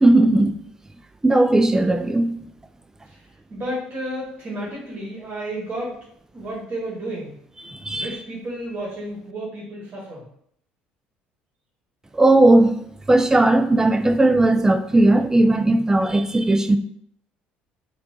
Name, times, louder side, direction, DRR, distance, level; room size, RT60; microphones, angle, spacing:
voice 1, 0.0-0.6 1.2-2.4 7.6-8.1 12.1-12.8 13.1-16.8, right 2 dB, 10° right, 0.3 m, -17 dB
voice 2, 3.5-6.0 6.3-7.4 8.0-10.3, right 1 dB, 35° right, 1.2 m, -32 dB
4.3 x 2.3 x 2.7 m
figure-of-eight pair, 55°, 5 cm